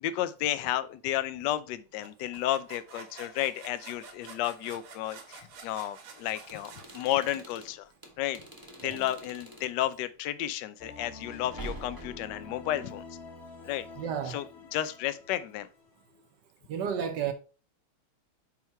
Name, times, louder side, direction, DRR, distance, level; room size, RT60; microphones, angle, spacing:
voice 1, 0.0-7.9 8.2-8.4 8.8-13.0 13.6-13.9 14.3-14.4 14.7-15.7, left 13 dB, 75° left, 1.0 m, -32 dB
sound 1, 2.0-7.7, right 4 dB, 85° right, 2.3 m, -49 dB
sound 2, 6.5-9.8 11.3-12.4, right 2 dB, 15° right, 0.7 m, -46 dB
sound 3, 10.8-16.2, left 3 dB, 40° left, 1.1 m, -47 dB
voice 2, 14.0-14.4 16.7-17.3, right 8 dB, 65° right, 1.2 m, -32 dB
5.6 x 4.5 x 4.6 m
omnidirectional pair, 2.4 m